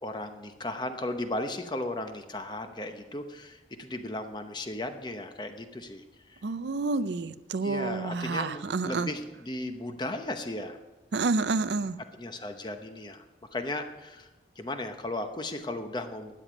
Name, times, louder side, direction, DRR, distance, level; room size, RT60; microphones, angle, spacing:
voice 1, 0.0-6.4 7.6-10.8 12.1-13.2 13.5-14.3 14.6-16.3, left 1 dB, 25° left, 7 dB, 0.8 m, -36 dB
voice 2, 6.4-9.1 11.1-12.0, right 3 dB, 80° right, 13 dB, 0.5 m, -29 dB
13.0 x 9.2 x 5.1 m, 1.1 s
head